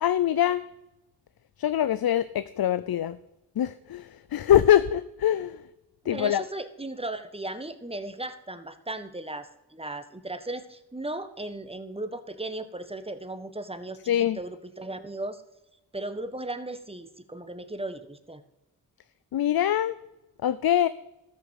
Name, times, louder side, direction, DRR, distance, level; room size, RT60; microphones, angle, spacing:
voice 1, 0.0-0.6 1.6-3.2 3.6-5.6 6.1-6.4 14.1-14.4 19.3-20.0 20.4-20.9, left 11 dB, 65° left, 15 dB, 0.6 m, -23 dB
voice 2, 6.0-15.4 15.9-18.4, right 2 dB, 15° right, 10 dB, 1.5 m, -36 dB
13.5 x 6.3 x 8.1 m, 0.94 s
cardioid pair, 40°, 40 cm